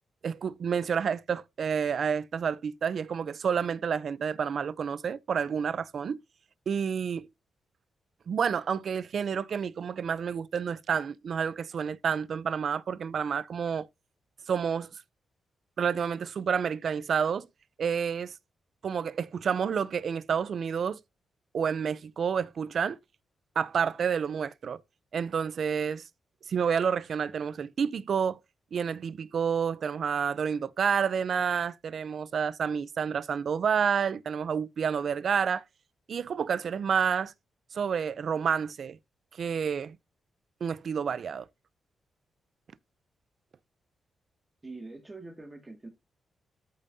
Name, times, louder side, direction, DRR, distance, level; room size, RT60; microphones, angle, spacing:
voice 1, 0.2-6.2 6.7-7.3 8.3-13.9 14.5-14.9 15.8-17.5 17.8-18.3 18.8-21.0 21.5-23.0 23.6-24.8 25.1-26.0 26.5-28.4 28.7-35.6 36.1-37.3 37.7-39.0 39.4-40.0 40.6-41.5, right 7 dB, 55° right, 0.5 m, -29 dB
voice 2, 44.6-45.9, right 3 dB, 20° right, 2.0 m, -44 dB
13.5 x 5.2 x 2.7 m
cardioid pair, 125°, 0 cm